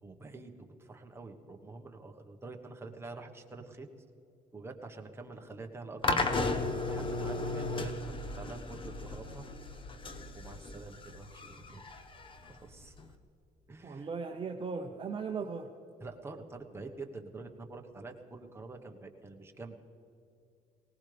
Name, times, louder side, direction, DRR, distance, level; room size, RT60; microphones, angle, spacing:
voice 1, 0.0-3.9 4.5-6.1 6.5-9.4 9.7-9.8 10.3-12.1 12.4-13.0 13.7-14.1 16.0-19.8, right 3 dB, 15° right, 3 dB, 1.3 m, -47 dB
sound 1, 6.0-13.1, left 3 dB, 30° left, 1.1 m, -35 dB
voice 2, 7.3-7.7 13.8-15.7, right 5 dB, 30° right, 3 dB, 0.9 m, -38 dB
20.0 x 18.5 x 3.4 m, 2.8 s
cardioid pair, 110°, 17 cm